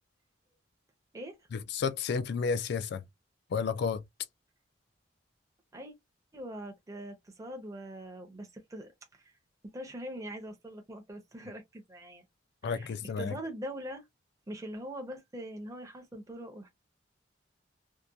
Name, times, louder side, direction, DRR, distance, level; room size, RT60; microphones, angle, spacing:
voice 1, 1.5-3.0 3.5-4.0 12.6-13.3, left 5 dB, 65° left, 0.3 m, -31 dB
voice 2, 6.3-9.3 9.7-12.2 12.6-14.0 14.5-16.7, right 1 dB, 20° right, 0.6 m, -42 dB
2.8 x 2.1 x 2.2 m
head